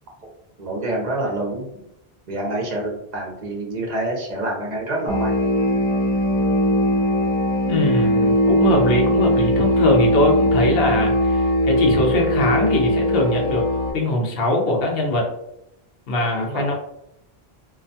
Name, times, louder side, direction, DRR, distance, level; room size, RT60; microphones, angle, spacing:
voice 1, 0.6-1.8 2.3-5.3 16.5-16.7, right 1 dB, 50° right, -2 dB, 0.7 m, -27 dB
sound 1, 5.1-13.9, equal, 50° left, 1.1 m, -20 dB
voice 2, 7.7-13.6 13.9-15.3 16.1-16.7, left 1 dB, 70° left, 0 dB, 0.8 m, -21 dB
2.3 x 2.1 x 2.6 m, 0.80 s
omnidirectional pair, 1.0 m